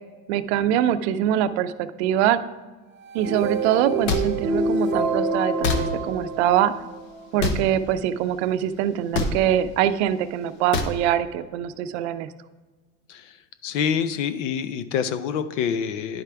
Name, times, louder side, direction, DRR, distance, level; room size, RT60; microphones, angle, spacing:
voice 1, 0.3-2.4 3.1-6.7 7.3-12.3, right 10 dB, 65° right, 11 dB, 0.6 m, -23 dB
sound 1, 3.0-7.2, right 3 dB, 30° right, 0.8 m, -27 dB
sound 2, 4.1-4.2 5.6-5.8 7.4-7.6 9.1-9.3 10.7-10.9, left 4 dB, 60° left, 1.1 m, -23 dB
voice 2, 13.6-16.2, left 7 dB, 80° left, 12 dB, 0.7 m, -26 dB
10.5 x 4.8 x 3.4 m, 1.3 s
supercardioid pair, 120°, 36 cm